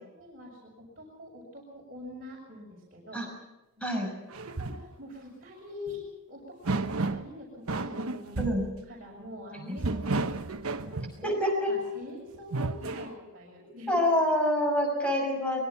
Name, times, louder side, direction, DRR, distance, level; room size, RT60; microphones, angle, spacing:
voice 1, 0.0-3.2 3.8-4.0 4.3-6.0 6.3-8.5 8.8-14.0, left 1 dB, 40° right, -5 dB, 6.4 m, -45 dB
sound 1, 4.3-4.9 5.9-6.0 6.6-7.3 7.7-8.7 9.8-11.2 12.3-13.1, right 3 dB, 80° right, 1.2 m, -32 dB
voice 2, 11.2-11.7 13.9-15.6, left 1 dB, 5° left, 1 dB, 5.9 m, -26 dB
23.5 x 21.5 x 5.9 m, 0.99 s
head